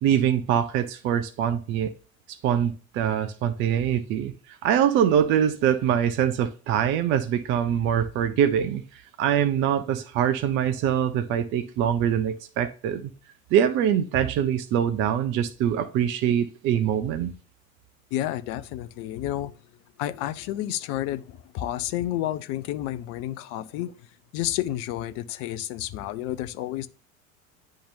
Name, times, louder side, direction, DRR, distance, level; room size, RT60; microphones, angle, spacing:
voice 1, 0.0-1.9 2.4-13.1 13.5-17.3, right 9 dB, 30° right, 0.5 m, -24 dB
voice 2, 18.1-19.5 20.0-23.9 24.3-26.9, left 13 dB, 35° left, 0.5 m, -30 dB
10.0 x 3.7 x 2.6 m
figure-of-eight pair, 80°, 41 cm